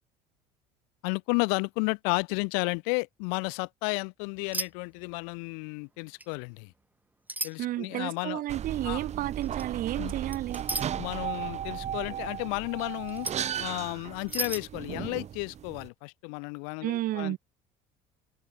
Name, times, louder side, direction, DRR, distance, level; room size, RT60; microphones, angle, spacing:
voice 1, 1.0-6.7 7.4-8.4 8.8-9.0 10.0-10.1 11.0-13.3 13.6-17.4, left 40 dB or more, 85° left, 2.3 m, -32 dB
sound 1, 4.5-4.7 5.0-5.3 6.2-6.3 7.3-7.5 9.4-9.6 10.3-10.9 13.1-13.5 14.3-14.6, right 2 dB, 10° right, 4.2 m, -33 dB
voice 2, 7.6-10.6 16.8-17.4, right 15 dB, 60° right, 5.9 m, -32 dB
sound 2, 8.5-15.9, right 9 dB, 45° right, 6.0 m, -36 dB
supercardioid pair, 110°, 16 cm